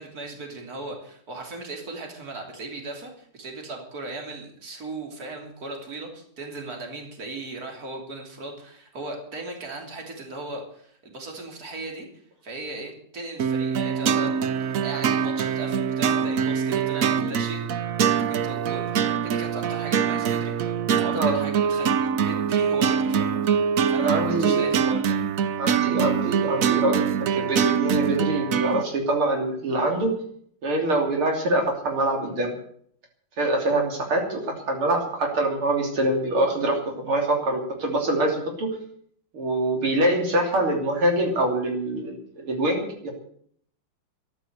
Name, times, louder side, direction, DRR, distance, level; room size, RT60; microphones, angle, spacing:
voice 1, 0.0-12.1 12.4-17.6 18.0-25.2, right 2 dB, 45° right, 2 dB, 3.6 m, -37 dB
sound 1, 13.4-28.8, right 7 dB, 65° right, 0.9 m, -24 dB
voice 2, 24.0-24.8 25.6-30.1 30.6-32.5 33.4-38.7 39.3-43.1, right 1 dB, 90° right, 2 dB, 4.1 m, -24 dB
13.5 x 11.0 x 8.0 m, 0.62 s
omnidirectional pair, 2.3 m